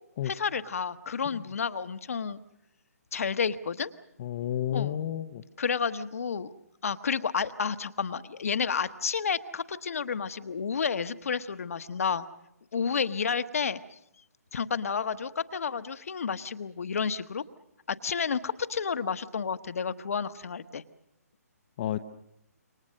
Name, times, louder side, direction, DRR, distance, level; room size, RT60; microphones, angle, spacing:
voice 1, 0.2-2.4 3.1-3.9 4.7-5.0 5.6-6.5 6.8-12.3 12.7-14.0 14.5-17.4 17.9-20.8, left 6 dB, 60° left, 11 dB, 1.2 m, -31 dB
voice 2, 4.2-5.4 21.8-22.0, left 11 dB, 35° left, 8 dB, 0.8 m, -31 dB
27.5 x 24.5 x 6.5 m, 0.83 s
figure-of-eight pair, 140°, 9 cm